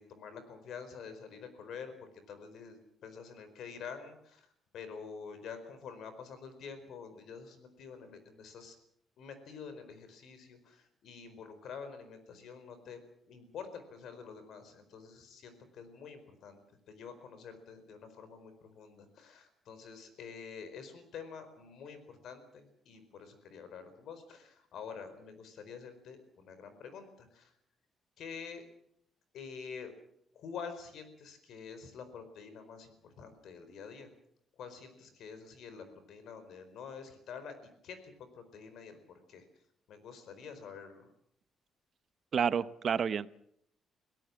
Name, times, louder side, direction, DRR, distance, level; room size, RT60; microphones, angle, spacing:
voice 1, 0.0-8.8 9.2-13.0 13.3-16.6 16.9-27.6 28.2-28.6 29.3-29.9 30.3-34.1 34.6-38.0 38.3-39.6 39.9-41.1, left 6 dB, 70° left, 10 dB, 4.6 m, -47 dB
voice 2, 42.3-43.3, right 7 dB, 50° right, 15 dB, 0.8 m, -29 dB
23.0 x 17.5 x 7.4 m, 0.71 s
cardioid pair, 120°, 0 cm